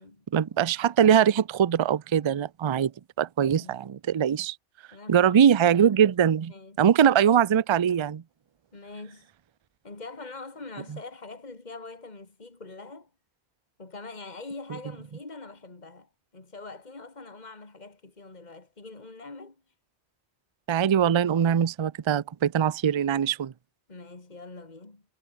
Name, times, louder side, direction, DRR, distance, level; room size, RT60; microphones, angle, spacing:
voice 1, 0.3-2.9 3.2-4.6 5.1-6.5 6.8-8.2 20.7-23.5, right 8 dB, 45° right, 0.4 m, -22 dB
voice 2, 3.5-3.8 4.9-5.7 6.5-7.2 8.7-9.3 9.8-13.1 13.8-19.6 23.9-25.0, left 3 dB, 40° left, 2.7 m, -44 dB
omnidirectional pair, 1.1 m